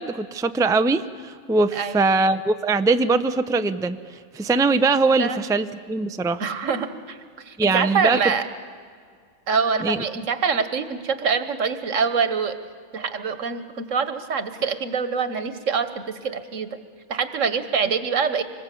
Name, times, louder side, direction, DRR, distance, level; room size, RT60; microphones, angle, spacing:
voice 1, 0.0-4.0 4.3-6.4 7.6-8.2 9.8-10.0, right 3 dB, 5° right, 10 dB, 0.4 m, -21 dB
voice 2, 6.4-7.2 7.4-8.4 9.5-12.6 12.9-16.8 17.1-18.4, right 5 dB, 85° right, 10 dB, 1.7 m, -25 dB
25.5 x 20.5 x 8.4 m, 2.1 s
omnidirectional pair, 1.3 m